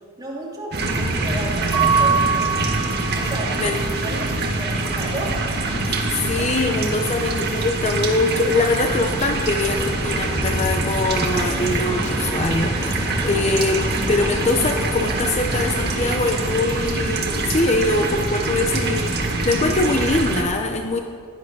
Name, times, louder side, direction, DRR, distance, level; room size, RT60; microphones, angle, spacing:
voice 1, 0.2-2.5 3.1-4.3 4.6-5.3, right 2 dB, 20° right, -4 dB, 3.0 m, -33 dB
sound 1, 0.7-20.4, right 2 dB, 50° right, 1.9 m, -24 dB
Mallet percussion, 1.7-3.5, right 6 dB, 65° right, 4.9 m, -22 dB
voice 2, 5.8-19.1 19.4-21.0, left 2 dB, 30° left, 4 dB, 0.8 m, -23 dB
sound 2, 9.6-16.8, left 1 dB, 10° left, 0.3 m, -32 dB
16.0 x 11.5 x 6.2 m, 2.2 s
head